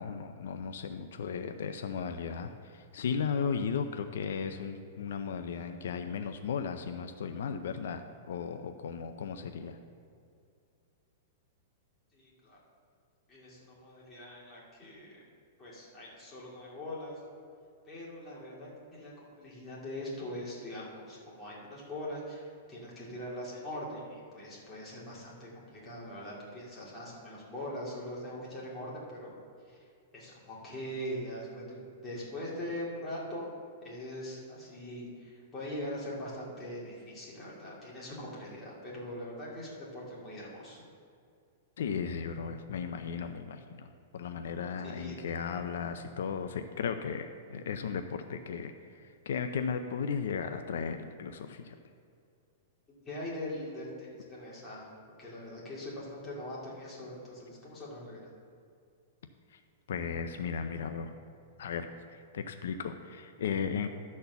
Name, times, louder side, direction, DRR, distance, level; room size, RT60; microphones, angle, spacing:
voice 1, 0.0-8.0 8.3-9.8 41.8-51.7 59.5-59.6 59.9-61.1 61.6-63.9, left 6 dB, 80° left, 7 dB, 0.5 m, -35 dB
voice 2, 12.1-12.6 13.3-15.2 15.6-17.2 17.8-29.3 29.7-29.8 30.1-33.5 33.8-40.8 44.8-45.2 53.0-54.9 55.2-58.3, left 1 dB, 15° left, -7 dB, 2.4 m, -42 dB
12.0 x 4.3 x 6.9 m, 2.3 s
supercardioid pair, 160°, 0 cm